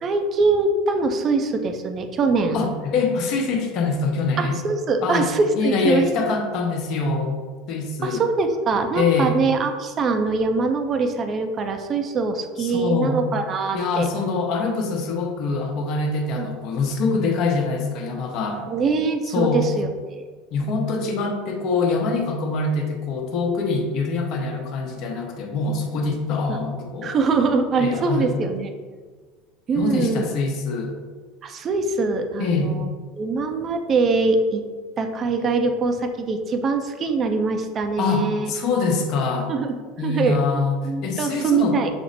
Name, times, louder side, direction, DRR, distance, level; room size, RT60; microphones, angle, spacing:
voice 1, 0.0-2.6 4.4-6.0 8.0-14.1 16.4-16.5 18.7-20.2 26.5-26.6 27.0-28.7 29.7-30.3 31.4-32.9 33.2-34.6 35.0-38.5 39.5-39.7 40.0-40.4 40.8-41.9, right 4 dB, 35° right, 6 dB, 0.5 m, -23 dB
voice 2, 2.5-4.6 5.0-5.3 5.6-7.4 7.7-8.2 8.9-9.4 12.6-13.2 13.7-18.6 19.3-19.7 20.5-27.2 27.8-28.3 29.7-31.0 32.4-32.8 38.0-39.5 40.0-40.8 41.0-41.8, left 4 dB, 55° left, 2 dB, 0.8 m, -24 dB
6.0 x 2.0 x 3.9 m, 1.5 s
supercardioid pair, 105°, 0 cm